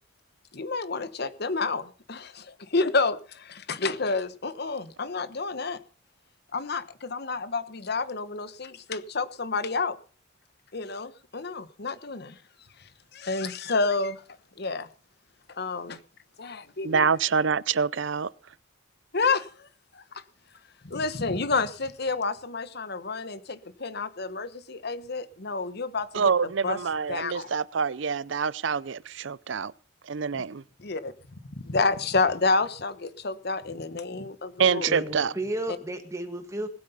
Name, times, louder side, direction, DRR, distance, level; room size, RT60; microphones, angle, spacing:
voice 1, 0.5-5.8 6.5-10.0 10.7-12.4 12.8-14.2 14.6-14.9 15.5-16.0 16.4-17.1 19.1-19.7 19.9-20.2 20.8-26.3 26.6-26.8 27.1-27.5 30.8-31.1 31.6-35.0, left 3 dB, 55° left, 1.1 m, -29 dB
voice 2, 16.8-18.3 26.1-29.7 30.1-30.6 34.6-35.3, right 6 dB, 65° right, 0.6 m, -26 dB
voice 3, 34.9-36.7, right 1 dB, 15° right, 1.9 m, -33 dB
20.0 x 8.5 x 5.5 m
head